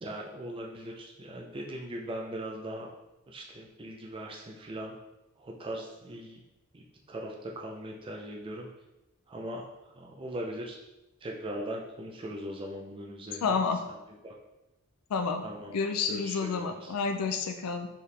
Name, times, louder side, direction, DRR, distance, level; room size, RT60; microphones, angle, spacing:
voice 1, 0.0-2.9 3.3-5.0 5.4-6.4 6.7-8.7 9.3-10.8 11.2-13.6 14.2-14.3 15.4-15.8 16.1-17.0, right 1 dB, 25° right, 0 dB, 0.4 m, -40 dB
voice 2, 13.4-13.8 15.1-15.4 15.7-17.9, left 5 dB, 85° left, 6 dB, 0.4 m, -29 dB
4.6 x 3.4 x 3.2 m, 0.98 s
head